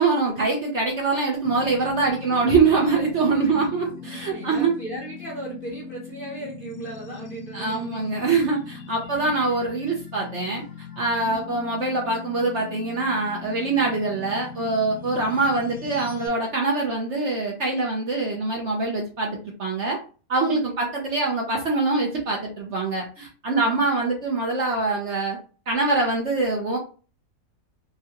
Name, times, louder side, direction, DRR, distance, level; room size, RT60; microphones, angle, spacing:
voice 1, 0.0-4.7 7.5-10.6 11.0-20.0 20.3-25.4 25.7-26.8, right 3 dB, 55° right, -1 dB, 0.9 m, -24 dB
sound 1, 1.4-16.3, left 6 dB, 70° left, 1.0 m, -40 dB
voice 2, 2.2-2.5 3.5-3.7 4.0-8.2 9.1-9.4 11.2-11.4 11.7-11.8 20.4-20.8 23.5-23.8, right 2 dB, 40° left, -4 dB, 0.8 m, -37 dB
3.8 x 2.2 x 2.8 m, 0.36 s
omnidirectional pair, 1.7 m